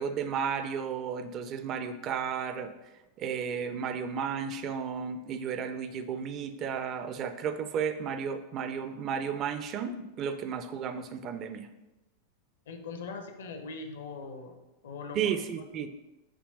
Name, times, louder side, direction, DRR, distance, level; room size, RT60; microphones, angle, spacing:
voice 1, 0.0-2.7 3.2-11.7 15.1-15.9, right 7 dB, 35° right, 10 dB, 0.5 m, -33 dB
voice 2, 12.7-14.6 14.8-15.3, left 4 dB, 60° left, 6 dB, 0.8 m, -41 dB
6.1 x 3.2 x 5.2 m, 1.0 s
figure-of-eight pair, 90°, 0 cm